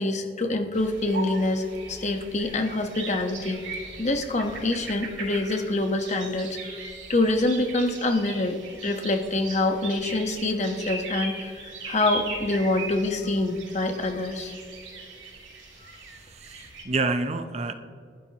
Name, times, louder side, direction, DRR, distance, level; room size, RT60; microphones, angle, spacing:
voice 1, 0.0-3.6 4.0-8.6 8.8-14.5, left 2 dB, 40° left, 5 dB, 1.2 m, -26 dB
sound 1, 0.7-16.8, right 3 dB, 90° right, 4.9 m, -39 dB
voice 2, 16.1-17.7, right 3 dB, 35° right, 9 dB, 0.7 m, -29 dB
30.0 x 11.5 x 3.0 m, 2.2 s
head